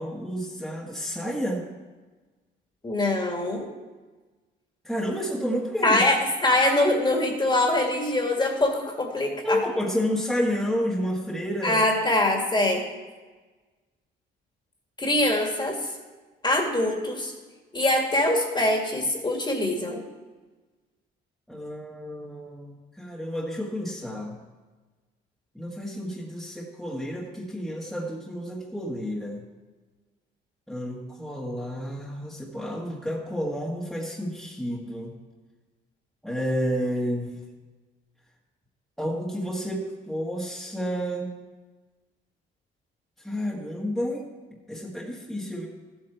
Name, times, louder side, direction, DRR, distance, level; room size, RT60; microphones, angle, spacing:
voice 1, 0.0-1.7 4.8-6.0 9.4-11.8 21.5-24.4 25.5-29.4 30.7-35.2 36.2-37.3 39.0-41.4 43.2-44.2 44.7-45.7, equal, ahead, -4 dB, 1.6 m, -30 dB
voice 2, 2.8-3.7 5.8-9.6 11.6-12.8 15.0-15.8 16.4-17.3 17.7-20.0, left 1 dB, 25° left, 2 dB, 2.1 m, -23 dB
14.0 x 8.1 x 4.4 m, 1.3 s
cardioid pair, 90°, 20 cm